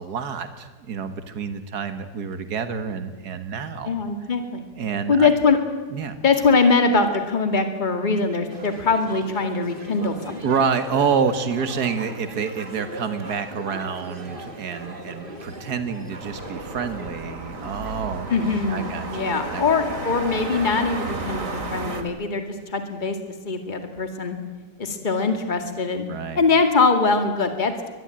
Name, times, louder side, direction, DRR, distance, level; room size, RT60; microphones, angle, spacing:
voice 1, 0.0-4.0 4.8-5.3 5.9-6.2 10.4-19.8 26.1-26.4, right 6 dB, 70° right, 9 dB, 2.1 m, -28 dB
voice 2, 3.9-4.6 5.1-5.6 6.2-10.4 18.3-23.2 23.5-24.4 24.8-26.1 26.4-27.9, left 4 dB, 30° left, 6 dB, 2.2 m, -22 dB
sound 1, 8.5-21.4, right 1 dB, 30° right, 2.7 m, -39 dB
sound 2, 16.2-22.0, right 2 dB, 55° right, 2.7 m, -33 dB
24.0 x 20.5 x 8.9 m, 1.3 s
omnidirectional pair, 1.7 m